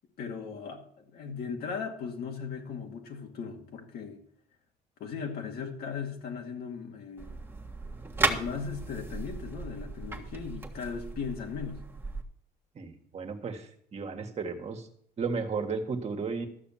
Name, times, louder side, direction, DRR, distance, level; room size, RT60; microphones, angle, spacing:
voice 1, 0.2-4.2 5.0-7.3 8.3-11.8, left 6 dB, 65° left, 2.3 m, -38 dB
sound 1, 7.2-12.2, right 2 dB, 15° right, 1.5 m, -35 dB
voice 2, 12.8-14.9 15.2-16.5, right 4 dB, 40° right, 1.8 m, -34 dB
13.5 x 6.3 x 7.4 m
cardioid pair, 110°, 17 cm